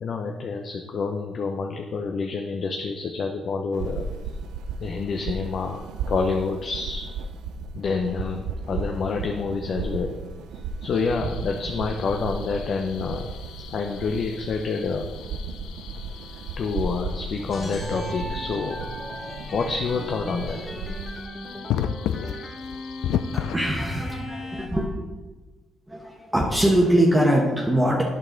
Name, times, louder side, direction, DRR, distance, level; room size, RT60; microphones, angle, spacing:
voice 1, 0.0-4.1 4.8-7.0 7.7-10.2 10.8-13.3 13.7-15.1 16.3-18.9 19.5-20.7, left 4 dB, 55° left, 3 dB, 0.7 m, -28 dB
sound 1, 3.7-21.3, right 4 dB, 90° right, 0.5 m, -35 dB
sound 2, 10.9-23.6, left 9 dB, 85° left, 0.3 m, -35 dB
sound 3, 17.5-24.7, equal, 25° left, 1.5 m, -37 dB
voice 2, 23.3-24.9 25.9-28.0, right 1 dB, 10° right, -2 dB, 1.1 m, -22 dB
8.8 x 6.3 x 3.9 m, 1.3 s
cardioid pair, 90°, 0 cm